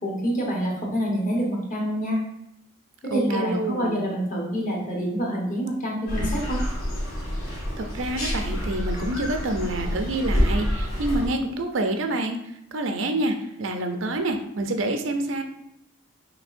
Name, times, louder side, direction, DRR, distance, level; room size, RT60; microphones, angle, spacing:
voice 1, 0.0-2.2 3.0-6.6, equal, 35° left, -2 dB, 1.1 m, -27 dB
voice 2, 3.1-4.0 7.8-12.4 12.7-15.4, right 1 dB, 65° right, 5 dB, 0.5 m, -27 dB
sound 1, 6.1-11.3, equal, 80° left, 1.5 m, -27 dB
6.1 x 3.3 x 2.5 m, 0.79 s
head